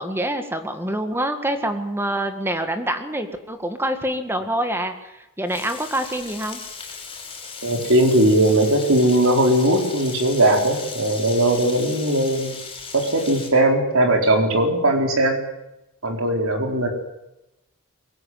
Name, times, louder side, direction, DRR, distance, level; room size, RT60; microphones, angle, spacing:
voice 1, 0.0-5.1 5.4-6.6, right 1 dB, 10° right, 7 dB, 1.8 m, -26 dB
Frying (food), 5.5-13.5, left 5 dB, 25° left, 6.8 m, -37 dB
voice 2, 7.6-12.6 12.9-15.4 16.0-16.9, right 1 dB, 65° right, 3 dB, 4.6 m, -19 dB
23.5 x 16.0 x 9.4 m, 0.93 s
head